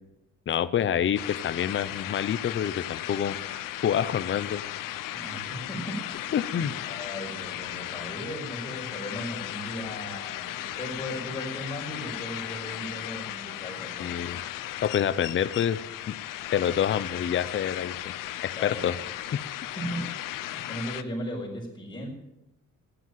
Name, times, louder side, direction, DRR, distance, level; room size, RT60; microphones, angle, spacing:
voice 1, 0.5-3.4 3.8-4.6 6.3-6.7 14.0-14.4 14.8-15.8 16.1-16.2 16.5-18.1 18.4-19.0 19.3-19.4, left 9 dB, 40° left, 13 dB, 0.7 m, -27 dB
sound 1, 1.2-21.0, left 14 dB, 85° left, 0.8 m, -36 dB
voice 2, 5.1-14.1 18.5-19.0 19.8-20.1 20.5-22.1, equal, 15° left, -2 dB, 5.3 m, -37 dB
15.0 x 10.5 x 7.9 m, 0.90 s
cardioid pair, 145°, 32 cm